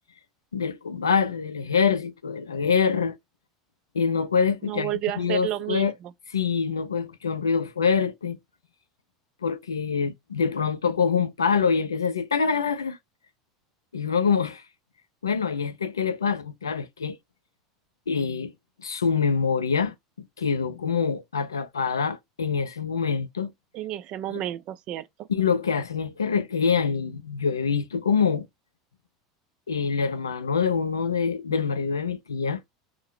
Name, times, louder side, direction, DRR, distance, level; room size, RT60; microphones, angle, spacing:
voice 1, 0.5-3.2 3.9-5.9 6.3-8.4 9.4-13.0 13.9-14.6 15.2-17.2 18.1-18.5 18.8-19.9 20.4-23.5 24.3-24.4 25.3-28.5 29.7-32.6, left 6 dB, 85° left, 0.4 m, -25 dB
voice 2, 4.7-6.1 23.7-25.1, right 13 dB, 50° right, 0.3 m, -31 dB
2.6 x 2.1 x 3.0 m
figure-of-eight pair, 75°, 2 cm